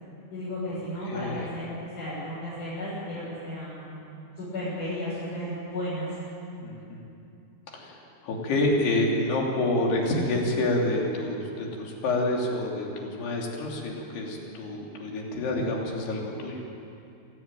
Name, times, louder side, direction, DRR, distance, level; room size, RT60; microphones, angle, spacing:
voice 1, 0.3-4.0 4.4-6.1, left 1 dB, 50° left, -11 dB, 8.9 m, -34 dB
voice 2, 1.0-1.5 6.6-7.0 7.7-16.6, left 2 dB, 80° left, -1 dB, 5.2 m, -28 dB
25.5 x 16.0 x 9.1 m, 2.7 s
omnidirectional pair, 4.7 m